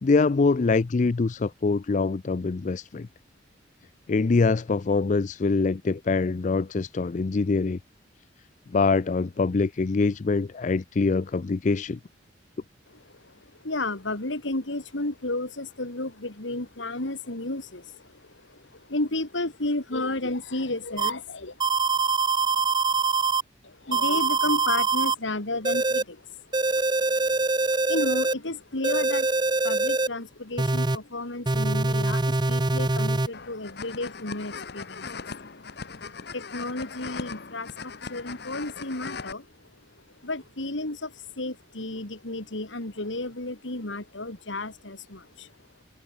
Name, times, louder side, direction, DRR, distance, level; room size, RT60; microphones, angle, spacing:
voice 1, 0.0-3.1 4.1-7.8 8.7-12.0, left 4 dB, 40° left, 0.4 m, -24 dB
voice 2, 13.6-21.6 23.6-26.2 26.8-26.9 27.9-29.3 29.6-35.3 36.3-39.5 40.2-45.5, left 2 dB, 85° left, 3.0 m, -32 dB
sound 1, 21.0-21.1 21.6-23.4 23.9-25.2 25.7-26.0 26.5-28.3 28.8-30.1 30.6-31.0 31.5-33.3, right 3 dB, 25° right, 0.9 m, -24 dB
sound 2, 33.3-39.3, left 5 dB, 60° left, 1.1 m, -39 dB
head